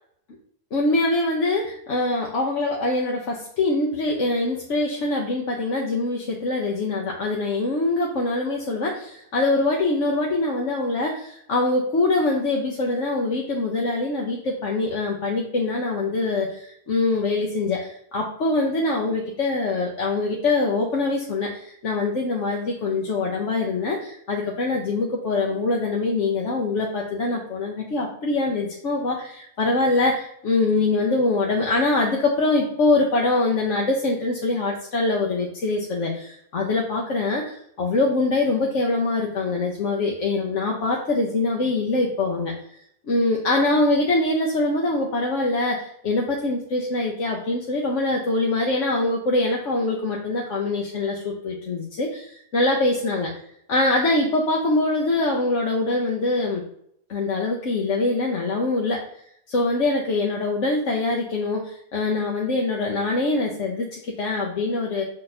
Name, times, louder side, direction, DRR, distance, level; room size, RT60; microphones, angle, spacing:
voice 1, 0.7-42.5 43.1-53.3 53.7-56.6 57.1-59.0 59.5-65.0, left 2 dB, 60° left, -1 dB, 1.2 m, -23 dB
6.3 x 4.3 x 4.2 m, 0.70 s
omnidirectional pair, 1.4 m